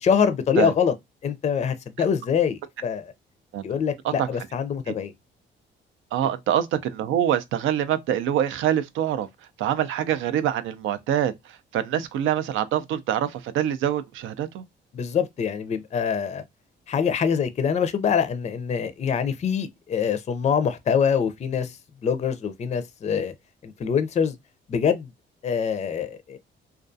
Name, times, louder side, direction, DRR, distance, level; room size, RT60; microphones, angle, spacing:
voice 1, 0.0-0.9 1.2-3.1 3.6-5.1 14.9-16.4 16.9-23.3 23.6-24.4 24.7-25.1 25.4-26.4, left 7 dB, 35° left, 0.4 m, -24 dB
voice 2, 6.1-9.3 9.6-14.6, right 10 dB, 80° right, 0.4 m, -25 dB
2.3 x 2.3 x 2.5 m
cardioid pair, 90°, 20 cm